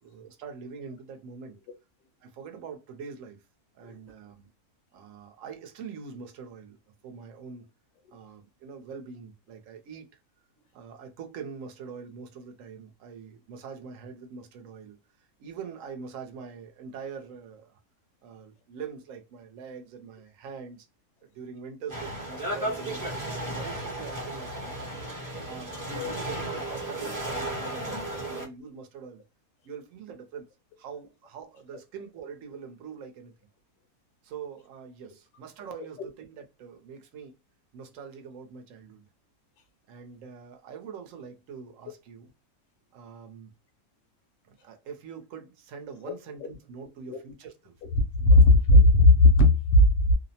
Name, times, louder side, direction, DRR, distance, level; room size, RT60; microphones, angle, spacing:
voice 1, 0.0-1.6 2.2-3.4 3.7-4.5 4.9-6.8 7.0-7.7 8.1-10.1 10.7-15.0 15.4-17.8 18.2-20.9 21.3-24.9 25.4-29.2 29.6-30.5 30.8-33.3 34.2-37.3 37.7-39.1 39.9-42.3 42.9-43.5 44.4-47.7 48.2-48.6, right 6 dB, 70° right, 0.9 m, -43 dB
sound 1, 21.9-28.5, right 1 dB, 20° right, 0.6 m, -34 dB
voice 2, 48.1-50.1, left 2 dB, 65° left, 0.9 m, -17 dB
2.7 x 2.0 x 2.7 m
omnidirectional pair, 1.6 m